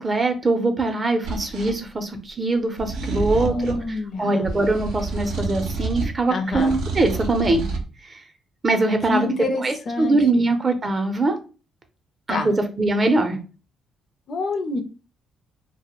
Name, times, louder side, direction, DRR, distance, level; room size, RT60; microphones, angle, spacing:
voice 1, 0.0-3.5 4.2-7.7 8.1-8.2 8.6-9.3 9.6-11.4 12.3-13.4, right 2 dB, 30° right, 6 dB, 0.5 m, -22 dB
sound 1, 1.2-1.8 2.8-3.9 4.4-6.2 6.5-7.8, right 3 dB, 90° right, 0.5 m, -29 dB
voice 2, 3.4-4.5 6.3-6.8 9.1-10.5 12.3-12.5 14.3-14.8, left 2 dB, 50° left, 7 dB, 0.4 m, -27 dB
2.2 x 2.0 x 2.9 m, 0.34 s
cardioid pair, 90°, 0 cm